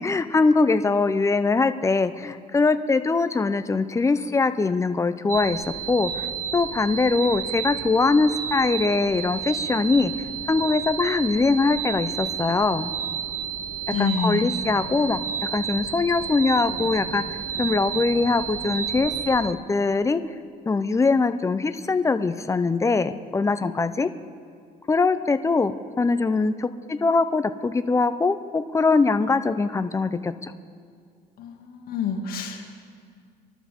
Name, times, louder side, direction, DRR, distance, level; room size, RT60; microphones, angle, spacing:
voice 1, 0.0-6.3 6.5-10.1 10.5-12.9 14.0-15.2 15.5-20.2 20.7-24.1 24.9-25.7 26.0-30.5, left 4 dB, 15° left, 11 dB, 0.6 m, -22 dB
sound 1, 5.3-19.5, right 8 dB, 55° right, 0.7 m, -31 dB
voice 2, 13.5-14.5 31.4-32.7, left 6 dB, 60° left, 1 dB, 2.0 m, -29 dB
24.0 x 12.5 x 3.7 m, 2.2 s
cardioid pair, 110°, 17 cm